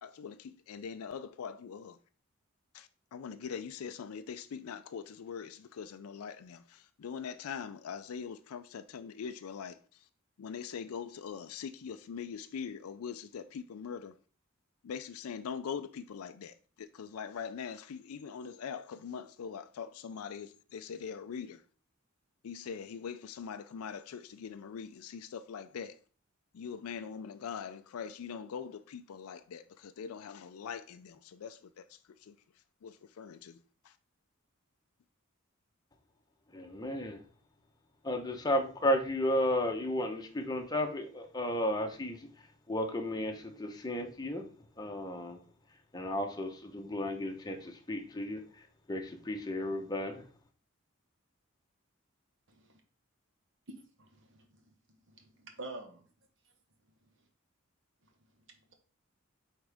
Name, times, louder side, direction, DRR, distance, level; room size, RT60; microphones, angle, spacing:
voice 1, 0.0-2.0 2.7-10.1 10.4-14.2 14.8-21.6 22.4-26.0 26.5-32.4 32.8-33.6 33.8-34.0, left 6 dB, 85° left, 0.4 m, -42 dB
voice 2, 36.5-37.2 38.0-42.3 42.7-44.5 44.8-45.4 45.9-48.4 48.9-50.2, left 1 dB, 20° left, 0.9 m, -33 dB
voice 3, 52.5-52.8 54.0-54.5 55.1-56.0, right 2 dB, 60° right, 1.2 m, -47 dB
8.6 x 3.6 x 3.5 m
head